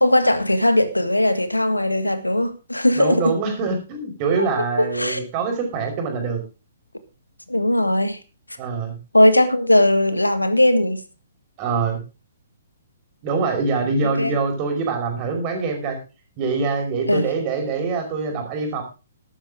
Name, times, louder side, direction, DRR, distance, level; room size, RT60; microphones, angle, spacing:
voice 1, 0.0-3.4 4.4-4.5 4.8-5.3 7.5-8.2 9.1-11.0 14.2-14.3 17.1-17.3, left 1 dB, 85° left, 1.7 m, -18 dB
voice 2, 3.0-6.4 8.6-9.0 11.6-12.0 13.2-16.0 16.4-18.8, right 4 dB, 30° right, 5.2 m, -24 dB
13.5 x 12.5 x 3.6 m
figure-of-eight pair, 125°, 0 cm